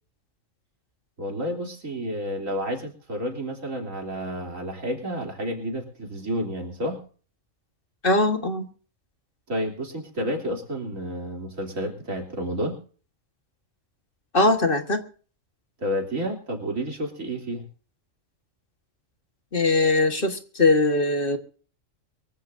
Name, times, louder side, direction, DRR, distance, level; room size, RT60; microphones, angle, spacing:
voice 1, 1.2-7.0 9.5-12.8 15.8-17.6, equal, 85° right, 1 dB, 3.8 m, -30 dB
voice 2, 8.0-8.7 14.3-15.0 19.5-21.4, left 2 dB, 45° left, 6 dB, 1.8 m, -21 dB
24.0 x 15.0 x 2.7 m, 0.41 s
omnidirectional pair, 1.3 m